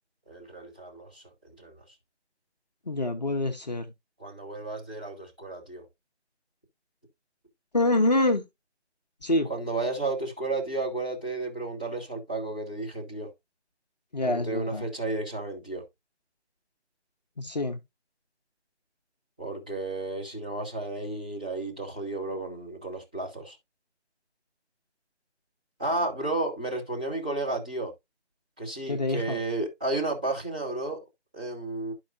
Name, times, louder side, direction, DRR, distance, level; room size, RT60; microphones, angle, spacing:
voice 1, 0.3-1.2 1.6-1.8 4.2-5.8 9.4-13.3 14.2-15.8 19.4-23.6 25.8-27.9 28.6-31.0 31.3-31.9, right 2 dB, 5° right, 1.1 m, -32 dB
voice 2, 2.9-3.9 7.7-8.4 9.2-9.5 14.1-14.8 17.4-17.8 28.9-29.4, left 2 dB, 35° left, 0.9 m, -26 dB
12.5 x 4.7 x 2.5 m
figure-of-eight pair, 160°, 35 cm